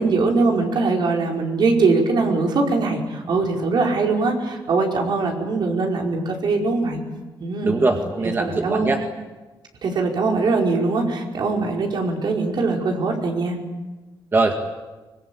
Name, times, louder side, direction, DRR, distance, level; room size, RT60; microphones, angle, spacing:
voice 1, 0.0-7.0 7.4-7.8 8.4-8.9 9.8-13.6, right 3 dB, 65° right, 1 dB, 5.1 m, -21 dB
voice 2, 7.6-9.0 14.3-14.5, right 3 dB, 30° right, 3 dB, 2.0 m, -21 dB
24.0 x 22.0 x 8.8 m, 1.2 s
cardioid pair, 125°, 8 cm